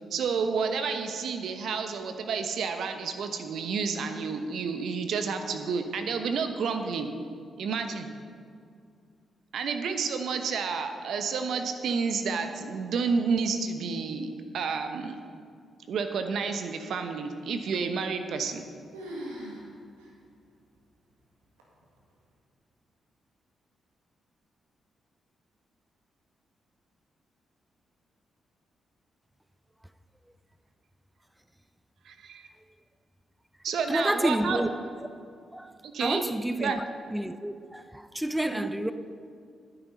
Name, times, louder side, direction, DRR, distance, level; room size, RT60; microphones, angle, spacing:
voice 1, 0.1-7.1 7.6-8.1 9.5-15.2 15.9-18.7 32.0-32.5 33.6-34.7 35.8-36.2 36.5-36.8 38.5-38.7, right 5 dB, 70° right, 1.0 m, -30 dB
sound 1, 18.2-18.7 18.9-19.7 20.0-20.1 20.8-20.9 21.6-22.0, equal, 90° right, 1.8 m, -40 dB
voice 2, 33.9-34.7 35.5-35.7 36.0-36.8 37.1-38.9, right 1 dB, 10° right, 0.6 m, -29 dB
11.0 x 9.9 x 5.4 m
hypercardioid pair, 40°, 0 cm